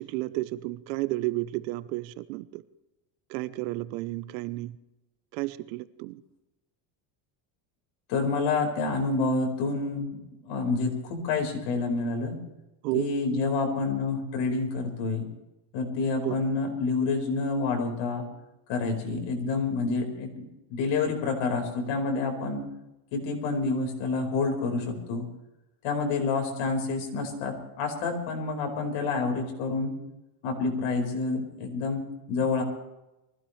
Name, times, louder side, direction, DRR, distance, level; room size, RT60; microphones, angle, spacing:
voice 1, 0.0-2.6 3.3-4.8 5.3-6.2 12.8-13.0 16.2-16.4, right 19 dB, 90° right, 1.0 m, -32 dB
voice 2, 8.1-10.2 10.4-12.4 12.9-15.3 15.7-18.2 18.7-22.6 23.1-25.3 25.8-30.0 30.4-32.6, left 3 dB, 65° left, 4.8 m, -28 dB
23.5 x 16.0 x 3.3 m
cardioid pair, 130°, 48 cm